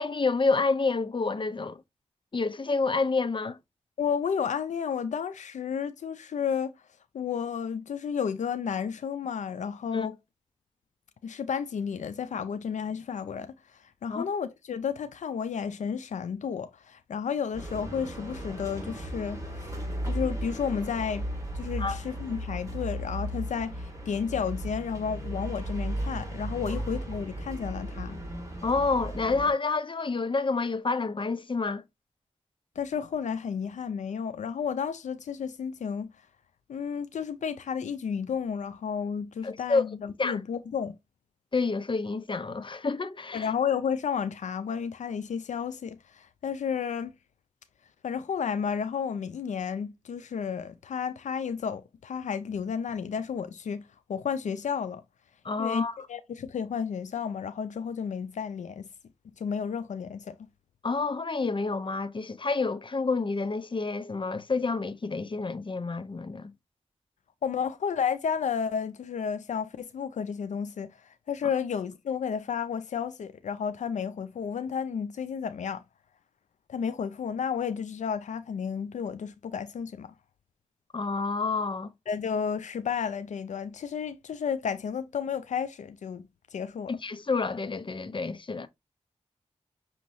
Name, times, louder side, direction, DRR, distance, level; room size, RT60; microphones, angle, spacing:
voice 1, 0.0-1.8 2.3-3.6 9.9-10.1 14.1-14.2 21.8-22.0 28.6-31.8 39.4-39.8 40.2-40.4 41.5-43.5 55.4-55.9 60.8-66.5 80.9-81.9 86.9-88.7, left 4 dB, 45° left, 0.7 m, -28 dB
voice 2, 4.0-6.7 7.1-10.2 11.2-19.7 20.1-21.3 21.5-28.2 32.8-36.1 36.7-41.0 43.3-47.1 48.0-53.8 54.1-55.0 55.6-58.9 59.4-60.4 67.4-75.8 76.7-80.1 82.1-87.0, left 7 dB, 90° left, 0.4 m, -32 dB
sound 1, 17.5-29.5, right 1 dB, 25° right, 2.4 m, -35 dB
6.2 x 2.9 x 2.6 m
cardioid pair, 45°, 12 cm